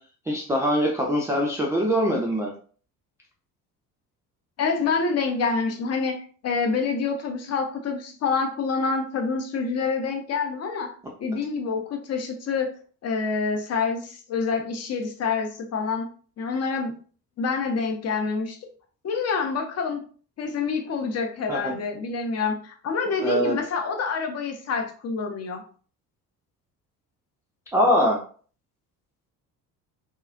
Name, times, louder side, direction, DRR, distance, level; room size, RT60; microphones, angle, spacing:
voice 1, 0.3-2.5 21.5-21.7 23.2-23.6 27.7-28.2, equal, 5° right, -4 dB, 0.3 m, -22 dB
voice 2, 4.6-10.9 11.2-12.7 13.0-16.1 16.4-16.9 17.4-18.6 19.0-20.0 20.4-25.6, left 5 dB, 30° left, 4 dB, 0.7 m, -27 dB
3.8 x 2.1 x 2.5 m, 0.43 s
figure-of-eight pair, 55°, 49 cm